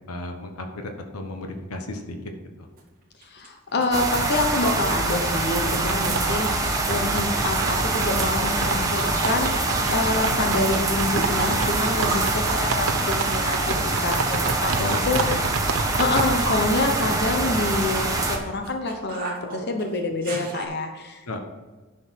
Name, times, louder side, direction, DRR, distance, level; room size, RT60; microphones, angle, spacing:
voice 1, 0.0-2.2 2.6-2.7 14.8-15.4 15.7-15.8 21.3-21.4, left 2 dB, 90° left, 4 dB, 1.3 m, -34 dB
sound 1, 2.8-2.9 3.2-4.9 5.2-6.6 6.9-7.1 7.4-7.9 8.2-10.8 11.1-12.5 12.7-15.1 15.6-20.6, right 3 dB, 40° right, 2.1 m, -35 dB
voice 2, 3.3-15.2 16.0-21.4, left 2 dB, 50° left, 4 dB, 1.0 m, -27 dB
sound 2, 3.9-18.4, right 2 dB, 15° right, 1.2 m, -25 dB
sound 3, 5.7-16.4, right 4 dB, 65° right, 0.7 m, -31 dB
10.0 x 6.3 x 4.7 m, 1.3 s
head